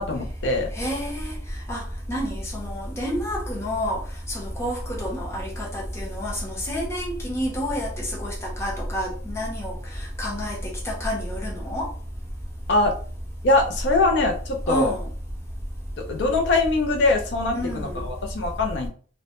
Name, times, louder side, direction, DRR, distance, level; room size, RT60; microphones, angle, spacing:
voice 1, 0.0-0.7 12.7-12.9 13.4-14.9 16.0-18.9, left 2 dB, 60° left, 0.4 m, -22 dB
voice 2, 0.7-4.0 4.3-11.9 14.7-15.1 17.5-18.1, equal, 15° left, 0.6 m, -29 dB
2.1 x 2.0 x 2.9 m
head